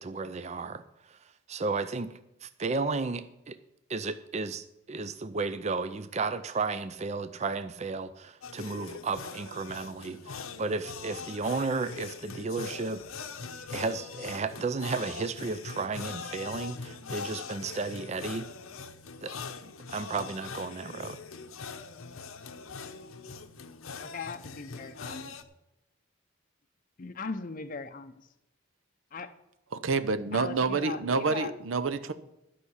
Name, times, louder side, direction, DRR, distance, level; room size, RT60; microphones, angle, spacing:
voice 1, 0.0-3.6 3.9-13.3 13.7-18.5 19.2-19.4 19.6-21.2, right 4 dB, 35° right, 12 dB, 0.5 m, -33 dB
sound 1, 8.4-25.4, left 5 dB, 90° left, 0.9 m, -42 dB
voice 2, 24.0-25.3 27.0-28.3 29.1-29.3 30.3-31.5, left 4 dB, 40° left, 7 dB, 0.6 m, -39 dB
voice 3, 29.8-32.1, right 4 dB, 70° right, 11 dB, 0.7 m, -28 dB
12.5 x 5.7 x 8.0 m, 0.92 s
head